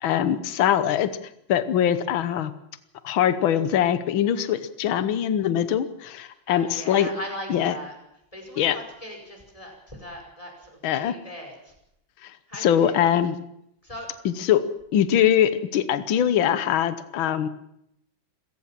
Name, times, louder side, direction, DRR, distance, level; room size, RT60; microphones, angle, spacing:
voice 1, 0.0-1.1 1.5-2.5 3.0-7.1 7.5-7.8 8.6-8.8 10.8-11.2 12.2-13.4 14.3-14.7 14.9-17.5, left 10 dB, 75° left, 13 dB, 1.8 m, -22 dB
voice 2, 6.3-8.0 8.3-11.7 12.5-12.9 13.8-14.1, equal, 15° left, 2 dB, 5.5 m, -39 dB
26.5 x 15.5 x 7.5 m, 0.79 s
omnidirectional pair, 2.2 m